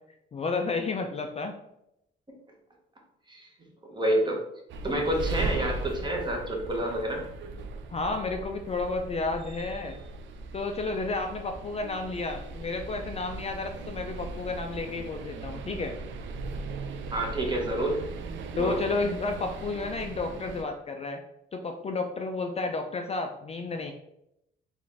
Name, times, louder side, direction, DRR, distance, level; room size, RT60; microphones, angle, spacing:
voice 1, 0.3-1.6 7.9-10.0 10.5-15.9 18.6-21.2 21.5-23.9, left 3 dB, 30° left, 5 dB, 0.3 m, -31 dB
voice 2, 3.8-4.4 4.8-7.2 17.1-18.0 18.6-18.8, right 1 dB, 20° right, 0 dB, 1.0 m, -28 dB
sound 1, 4.7-20.6, right 3 dB, 70° right, 0.4 m, -38 dB
3.8 x 2.5 x 3.3 m, 0.81 s
cardioid pair, 90°, 20 cm